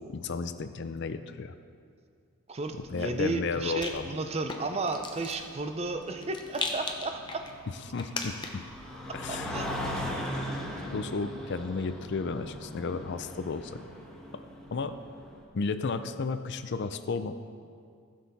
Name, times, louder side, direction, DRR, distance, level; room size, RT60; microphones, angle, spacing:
voice 1, 0.0-1.5 2.9-4.1 7.9-8.6 9.1-9.6 10.9-13.8 14.7-15.0 15.5-17.3, left 4 dB, 55° left, 10 dB, 0.5 m, -33 dB
voice 2, 2.5-7.5 9.3-10.0, right 3 dB, 30° right, 6 dB, 0.5 m, -33 dB
Rattle, 2.7-8.8, left 3 dB, 20° left, 0.7 m, -40 dB
sound 1, 4.8-15.4, equal, 5° left, 1.4 m, -39 dB
15.0 x 6.5 x 4.1 m, 2.2 s
head